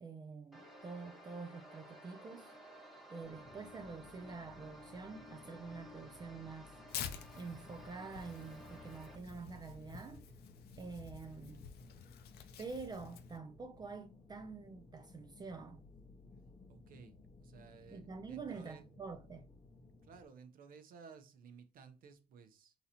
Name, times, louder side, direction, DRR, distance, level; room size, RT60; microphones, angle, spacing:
voice 1, 0.0-2.5 3.1-6.7 7.3-10.2 10.8-11.7 12.6-15.8 17.9-19.4, right 4 dB, 25° right, 0.4 m, -47 dB
sound 1, 0.5-9.2, equal, ahead, 1.1 m, -55 dB
sound 2, 3.2-20.3, left 3 dB, 20° left, 0.7 m, -59 dB
Tearing, 6.9-13.4, left 8 dB, 70° left, 0.6 m, -49 dB
voice 2, 16.7-17.1 17.4-18.9 20.0-22.7, right 5 dB, 60° right, 0.8 m, -56 dB
4.0 x 2.9 x 4.1 m
cardioid pair, 110°, 17 cm